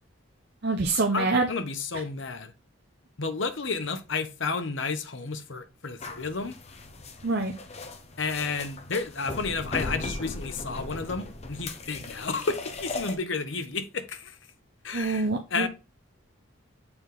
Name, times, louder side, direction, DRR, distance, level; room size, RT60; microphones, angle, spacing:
voice 1, 0.6-1.5 7.2-7.5 14.9-15.7, right 3 dB, 55° right, 0.7 m, -25 dB
voice 2, 1.1-2.5 3.2-6.6 8.2-14.4 14.8-15.7, left 4 dB, 65° left, 0.9 m, -31 dB
sound 1, 6.0-13.2, left 2 dB, 30° left, 0.8 m, -38 dB
7.1 x 3.5 x 3.8 m
head